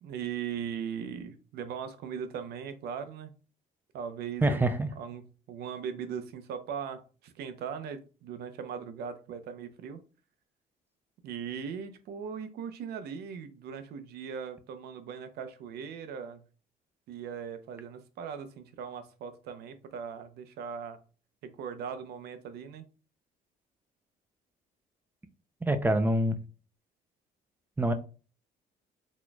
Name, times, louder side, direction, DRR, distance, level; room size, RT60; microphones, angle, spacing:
voice 1, 0.0-3.3 3.9-10.0 11.2-16.4 17.1-21.0 21.4-22.8, right 7 dB, 70° right, 0.6 m, -39 dB
voice 2, 4.4-4.9 25.6-26.4 27.8-27.9, right 1 dB, 10° right, 0.4 m, -25 dB
4.2 x 3.0 x 2.2 m
cardioid pair, 110°, 17 cm